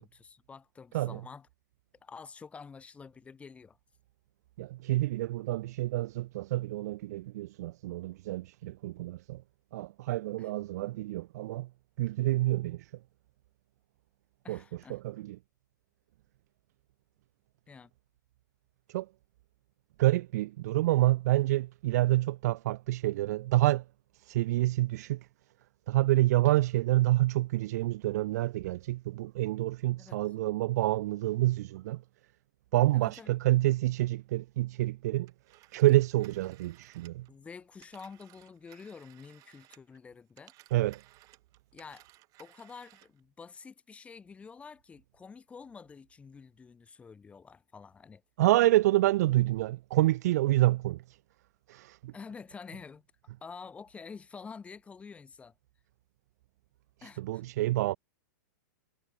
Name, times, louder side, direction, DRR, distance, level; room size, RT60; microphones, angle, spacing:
voice 1, 0.0-1.5 2.0-3.8 10.4-10.5 14.4-15.0 17.7-17.9 30.0-30.2 32.9-33.3 37.3-40.5 41.7-42.1 42.4-48.2 52.1-53.0 53.4-55.5 57.0-57.4, left 5 dB, 10° left, 3.7 m, -48 dB
voice 2, 0.9-1.3 4.6-9.4 9.7-11.7 12.0-12.8 14.5-15.4 18.9-19.1 20.0-23.8 24.3-25.2 25.9-32.0 32.7-35.3 35.7-37.3 40.7-41.0 48.4-51.0 51.7-52.1 57.0-58.0, right 16 dB, 55° right, 0.4 m, -28 dB
Telephone, 35.3-40.0 40.3-43.2, right 19 dB, 35° right, 7.5 m, -60 dB
hypercardioid pair, 145°, 10 cm